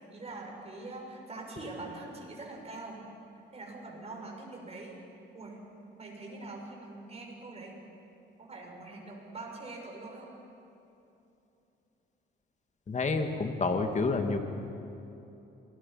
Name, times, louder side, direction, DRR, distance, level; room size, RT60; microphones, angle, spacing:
voice 1, 0.1-3.0 3.3-4.9 5.3-5.6 5.9-7.8 8.4-10.3, right 2 dB, 30° right, 0 dB, 6.5 m, -43 dB
voice 2, 12.9-14.4, left 3 dB, 35° left, 5 dB, 2.3 m, -29 dB
27.5 x 20.0 x 5.8 m, 2.9 s
cardioid pair, 90°, 20 cm